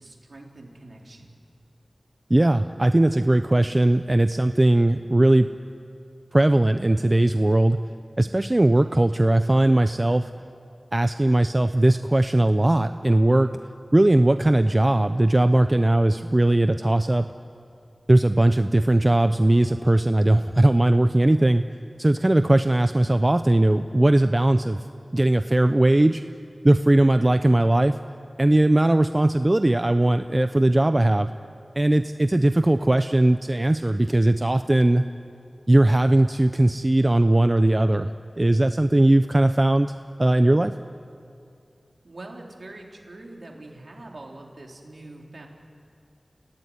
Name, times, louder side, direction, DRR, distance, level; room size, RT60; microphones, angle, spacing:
voice 1, 0.0-1.3 42.0-45.5, right 2 dB, 65° right, 0 dB, 3.9 m, -43 dB
voice 2, 2.3-5.5 6.3-7.8 8.2-10.3 10.9-13.5 13.9-17.3 18.1-21.6 22.0-24.8 25.1-26.2 26.6-27.9 28.4-31.3 31.8-35.0 35.7-38.1 38.4-39.9 40.2-40.7, right 1 dB, 30° right, 9 dB, 0.6 m, -19 dB
28.5 x 17.0 x 9.8 m, 2.5 s
wide cardioid pair, 70°, 0 cm